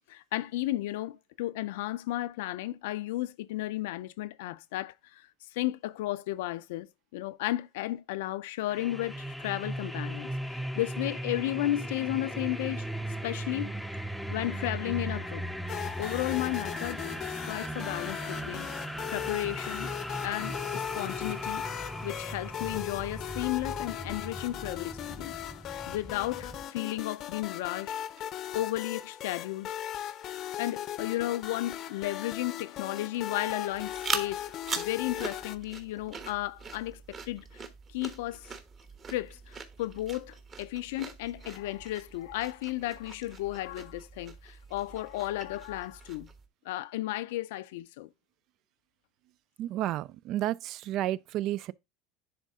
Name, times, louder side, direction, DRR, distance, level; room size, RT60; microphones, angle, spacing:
voice 1, 0.1-5.3 5.5-6.9 7.1-10.3 10.8-12.9 13.2-13.7 14.3-15.5 16.0-17.1 17.5-18.7 19.1-19.9 20.2-21.6 22.0-25.3 25.9-27.9 28.5-29.7 30.6-34.5 34.8-38.5 39.1-46.3 46.7-48.1, left 16 dB, 85° left, 0.5 m, -34 dB
sound 1, 8.7-26.6, equal, ahead, 0.6 m, -38 dB
sound 2, 15.7-35.6, left 11 dB, 45° left, 0.6 m, -38 dB
sound 3, 33.7-46.5, right 5 dB, 30° right, 1.2 m, -42 dB
voice 2, 49.6-51.7, right 13 dB, 50° right, 0.3 m, -31 dB
10.5 x 3.7 x 3.6 m
supercardioid pair, 130°, 0 cm